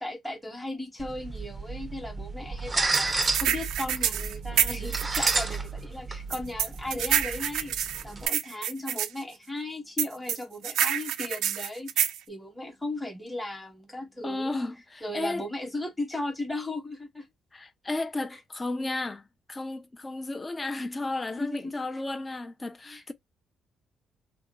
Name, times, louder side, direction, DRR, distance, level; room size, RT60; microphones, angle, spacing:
voice 1, 0.0-7.7 8.0-14.6 15.0-17.3 18.3-18.4 21.4-22.0 22.9-23.0, left 2 dB, 5° left, 1.0 m, -36 dB
sound 1, 1.0-8.3, right 3 dB, 25° right, 0.5 m, -32 dB
sound 2, 2.9-5.4 6.3-9.1 10.0-12.2, right 10 dB, 85° right, 0.4 m, -27 dB
voice 2, 14.2-15.4 17.5-23.1, left 2 dB, 25° left, 0.5 m, -33 dB
2.8 x 2.1 x 3.6 m
cardioid pair, 90°, 0 cm